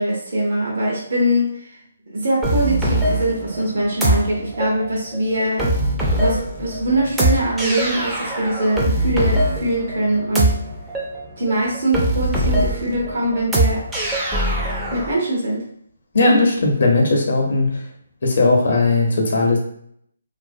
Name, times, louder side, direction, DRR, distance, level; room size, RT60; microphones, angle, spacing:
voice 1, 0.0-1.8 2.1-5.7 6.2-10.6 11.4-13.9 14.9-15.6 16.2-16.4, right 1 dB, 70° right, -3 dB, 0.7 m, -22 dB
sound 1, 2.4-15.1, right 1 dB, 5° right, 0.3 m, -22 dB
voice 2, 16.1-17.8 18.2-19.6, left 3 dB, 65° left, 0 dB, 0.6 m, -17 dB
2.4 x 2.0 x 2.5 m, 0.66 s
hypercardioid pair, 165°, 0 cm